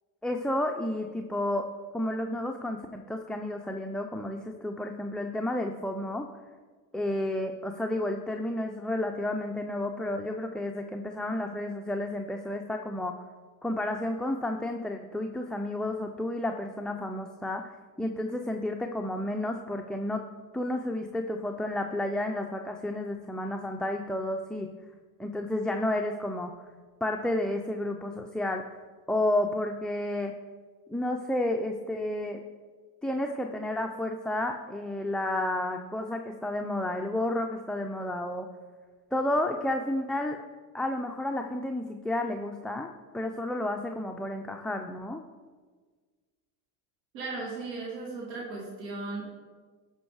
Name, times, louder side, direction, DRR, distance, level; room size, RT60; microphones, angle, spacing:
voice 1, 0.2-1.7 1.9-6.3 6.9-13.2 13.6-17.7 18.0-20.2 20.5-24.7 25.2-26.5 27.0-28.8 29.1-30.3 30.9-32.4 33.0-38.5 39.1-40.4 40.7-45.2, left 1 dB, ahead, 3 dB, 0.5 m, -31 dB
voice 2, 47.1-49.2, right 3 dB, 90° right, -3 dB, 2.6 m, -36 dB
12.0 x 5.6 x 4.8 m, 1.5 s
supercardioid pair, 85°, 48 cm